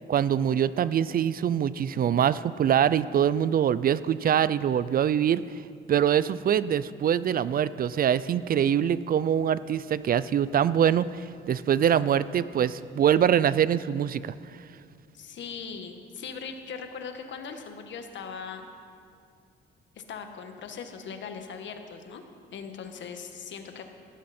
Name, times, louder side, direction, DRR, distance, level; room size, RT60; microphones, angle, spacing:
voice 1, 0.1-5.4 5.9-14.3, right 9 dB, 50° right, 17 dB, 0.4 m, -24 dB
voice 2, 15.1-18.7 19.9-22.2 22.5-23.8, left 6 dB, 65° left, 6 dB, 1.5 m, -39 dB
17.0 x 14.0 x 4.3 m, 2.3 s
cardioid pair, 90°, 20 cm